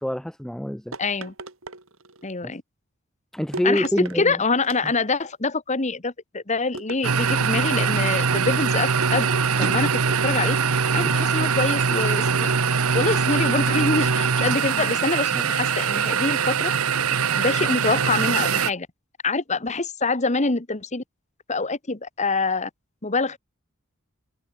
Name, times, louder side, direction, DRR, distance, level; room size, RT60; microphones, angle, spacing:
voice 1, 0.0-0.9 2.4-2.5 3.3-4.4 11.0-11.2 15.3-15.5, equal, ahead, 0.4 m, -26 dB
sound 1, 0.9-2.3 3.5-4.2 4.6-5.3 6.7-7.7 9.0-10.8 12.0-13.3, right 2 dB, 65° right, 4.7 m, -38 dB
voice 2, 1.0-1.3 2.2-2.6 3.6-12.5 12.9-16.7 17.3-18.9 19.2-21.0 21.5-22.7 23.0-23.4, left 3 dB, 35° left, 1.5 m, -25 dB
sound 2, 7.0-18.7, right 6 dB, 90° right, 1.1 m, -22 dB
head